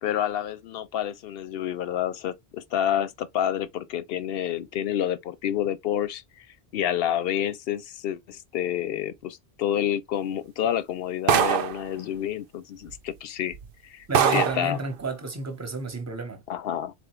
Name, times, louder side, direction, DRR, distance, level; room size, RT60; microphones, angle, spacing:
voice 1, 0.0-6.5 6.7-13.6 13.8-14.8 16.5-16.9, left 10 dB, 65° left, 0.7 m, -29 dB
sound 1, 11.3-11.9 12.9-13.0 13.5-13.6 14.1-14.7, right 8 dB, 60° right, 0.7 m, -22 dB
voice 2, 14.1-16.4, right 2 dB, 15° right, 0.9 m, -31 dB
4.1 x 3.5 x 3.1 m
omnidirectional pair, 1.1 m